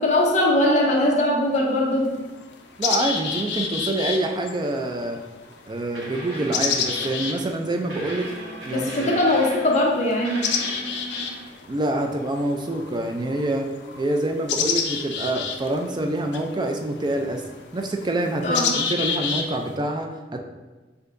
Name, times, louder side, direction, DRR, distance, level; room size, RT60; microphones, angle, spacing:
voice 1, 0.0-2.1 8.7-10.4 18.4-18.7, left 1 dB, 40° left, -2 dB, 0.8 m, -20 dB
sound 1, 0.6-0.7 1.6-1.7 2.1-19.7, left 6 dB, 70° left, 0.5 m, -30 dB
voice 2, 2.8-5.2 5.7-8.3 8.6-9.1 11.7-13.7 14.0-17.4 17.7-20.4, right 1 dB, 25° right, 3 dB, 0.4 m, -26 dB
sound 2, 5.4-5.5 5.9-7.5 7.9-9.9 10.2-11.6 13.9-14.0, right 1 dB, 75° right, 1.2 m, -37 dB
6.5 x 2.7 x 2.5 m, 1.2 s
head